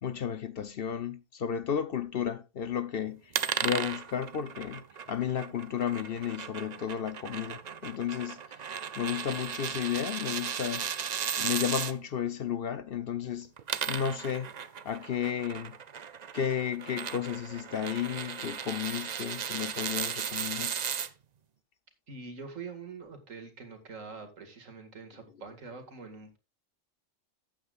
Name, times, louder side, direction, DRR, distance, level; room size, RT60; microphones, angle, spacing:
voice 1, 0.0-8.6 9.0-10.9 11.4-13.5 13.9-14.5 14.8-15.8 16.3-20.7, left 8 dB, 55° left, 0.8 m, -33 dB
sound 1, 3.3-11.9 13.4-21.1, right 7 dB, 50° right, 0.5 m, -36 dB
voice 2, 22.1-26.4, right 4 dB, 85° right, 2.4 m, -44 dB
14.0 x 8.8 x 2.4 m
omnidirectional pair, 1.3 m